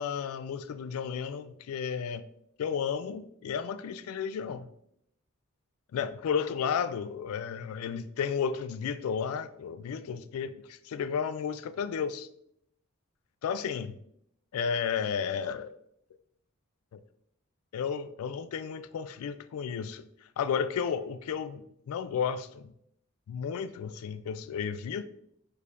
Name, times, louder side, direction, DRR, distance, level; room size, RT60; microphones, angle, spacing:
voice 1, 0.0-2.3 2.6-4.7 5.9-12.3 13.4-14.0 14.5-15.8 16.9-17.0 17.7-20.1 20.4-22.7 23.3-25.0, left 7 dB, 70° left, 0.3 m, -33 dB
4.6 x 2.5 x 3.4 m
head